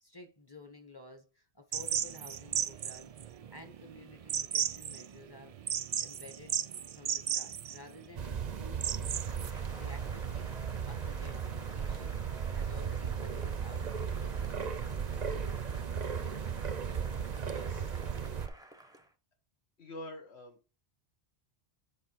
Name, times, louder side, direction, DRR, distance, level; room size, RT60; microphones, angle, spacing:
voice 1, 0.0-5.5 6.0-6.6 6.9-9.1 9.7-12.2 12.5-14.8, left 2 dB, 20° left, 1.2 m, -53 dB
sound 1, 1.7-9.5, right 8 dB, 70° right, 0.3 m, -35 dB
sound 2, 8.2-18.5, right 7 dB, 45° right, 0.7 m, -36 dB
Cheering / Applause, 9.1-19.1, right 1 dB, 5° right, 0.7 m, -53 dB
voice 2, 17.4-18.0 19.8-20.7, left 1 dB, 70° left, 1.5 m, -47 dB
8.0 x 4.5 x 4.5 m
omnidirectional pair, 1.1 m